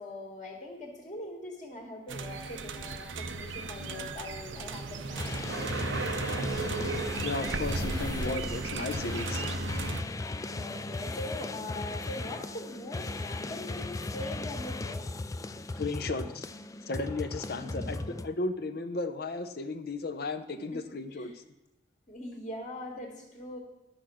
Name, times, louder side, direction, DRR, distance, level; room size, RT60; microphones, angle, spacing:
voice 1, 0.0-6.0 10.5-15.2 17.6-18.0 20.6-21.4 22.1-23.6, left 1 dB, 40° left, -1 dB, 1.8 m, -42 dB
sound 1, 2.1-10.0, right 3 dB, 85° right, 0.7 m, -35 dB
sound 2, 5.2-18.3, left 2 dB, 20° left, 0.3 m, -37 dB
voice 2, 7.2-9.6 15.7-16.5 16.9-21.3, left 3 dB, 55° left, 9 dB, 0.7 m, -35 dB
11.5 x 6.4 x 6.3 m, 0.95 s
head